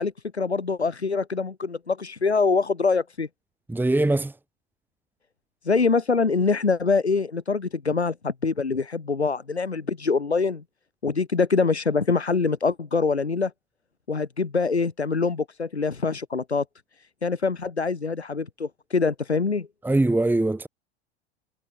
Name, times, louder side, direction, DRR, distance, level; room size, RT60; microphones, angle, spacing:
voice 1, 0.0-3.3 5.6-10.6 11.0-13.5 14.1-16.6 17.2-19.7, left 4 dB, 85° left, 4.9 m, -24 dB
voice 2, 3.7-4.3 19.8-20.7, right 2 dB, 5° right, 1.9 m, -22 dB
figure-of-eight pair, 85°, 32 cm